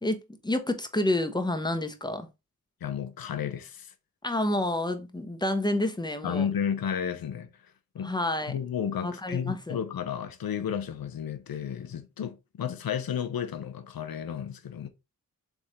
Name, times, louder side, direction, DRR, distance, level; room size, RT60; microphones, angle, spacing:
voice 1, 0.0-2.3 4.2-6.5 8.0-8.5 9.0-9.8, left 1 dB, 10° left, 1.0 m, -29 dB
voice 2, 2.8-3.9 6.2-7.5 7.9-8.1 8.5-14.9, left 8 dB, 70° left, 0.8 m, -32 dB
3.5 x 3.4 x 4.1 m
cardioid pair, 40°, 37 cm